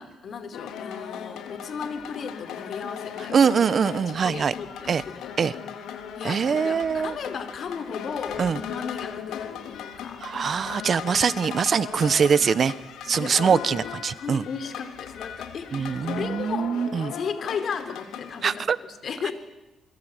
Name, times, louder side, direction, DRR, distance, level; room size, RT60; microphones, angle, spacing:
voice 1, 0.0-3.7 4.2-5.3 6.2-10.2 13.1-13.6 14.2-16.7 17.1-19.3, left 6 dB, 55° left, 10 dB, 3.7 m, -35 dB
sound 1, 0.5-18.6, left 8 dB, 85° left, 3.5 m, -37 dB
voice 2, 3.3-4.5 4.9-5.0 5.4-5.5 6.2-7.2 8.4-8.6 10.2-12.7 13.0-14.4 15.7-17.1 18.4-18.8, right 6 dB, 50° right, 17 dB, 1.1 m, -23 dB
27.5 x 22.5 x 9.3 m, 1.0 s
cardioid pair, 90°, 0 cm